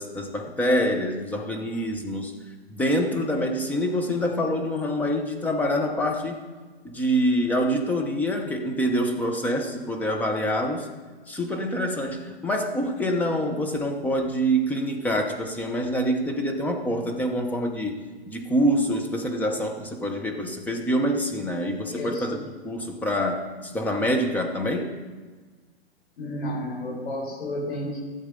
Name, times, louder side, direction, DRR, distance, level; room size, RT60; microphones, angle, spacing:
voice 1, 0.0-2.3 2.7-6.4 6.8-10.9 11.3-18.0 18.3-22.4 22.6-24.9, equal, 5° left, 3 dB, 0.8 m, -26 dB
voice 2, 21.9-22.4 26.2-28.0, left 1 dB, 75° left, -3 dB, 4.6 m, -32 dB
15.5 x 8.0 x 5.2 m, 1.4 s
hypercardioid pair, 145°, 32 cm